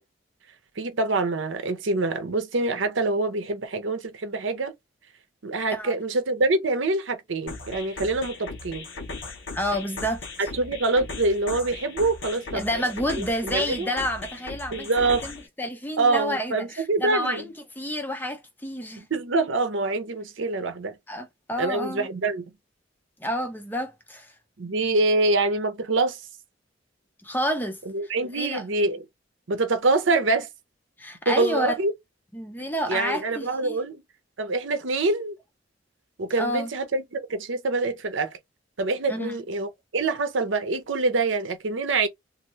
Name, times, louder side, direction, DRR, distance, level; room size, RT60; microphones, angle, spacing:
voice 1, 0.8-4.7 5.4-8.8 10.5-12.7 13.1-13.2 13.5-13.9 14.7-15.3 16.0-17.4 19.0-20.9 21.6-22.4 24.6-26.2 27.9-29.0 29.5-30.5 31.3-31.9 32.6-34.0 34.4-35.4 36.2-38.4 38.8-42.1, right 3 dB, 75° right, 0.7 m, -25 dB
sound 1, 7.5-15.5, left 3 dB, 80° left, 1.0 m, -38 dB
voice 2, 9.5-10.3 12.5-14.9 15.2-19.0 21.1-22.1 23.2-24.3 27.2-27.8 28.3-28.6 31.0-31.8 32.3-33.8 36.4-36.7 39.1-39.4, equal, 10° left, 0.5 m, -29 dB
2.7 x 2.6 x 3.0 m
head